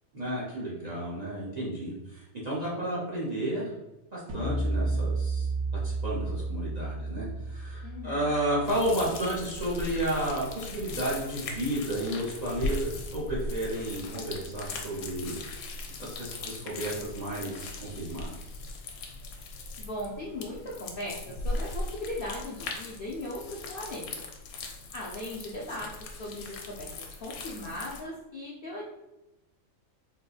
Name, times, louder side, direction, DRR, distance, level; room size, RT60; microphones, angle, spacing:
voice 1, 0.1-3.7 4.1-5.5 5.8-15.4 16.0-18.3, right 1 dB, 40° right, -7 dB, 0.6 m, -32 dB
sound 1, 4.3-9.6, right 2 dB, 65° right, 0.9 m, -32 dB
voice 2, 7.8-8.3 19.8-24.3 24.9-28.8, left 1 dB, 65° left, -5 dB, 0.5 m, -38 dB
sound 2, 8.7-28.0, left 3 dB, 85° left, 1.0 m, -39 dB
3.7 x 2.6 x 2.3 m, 0.97 s
omnidirectional pair, 1.5 m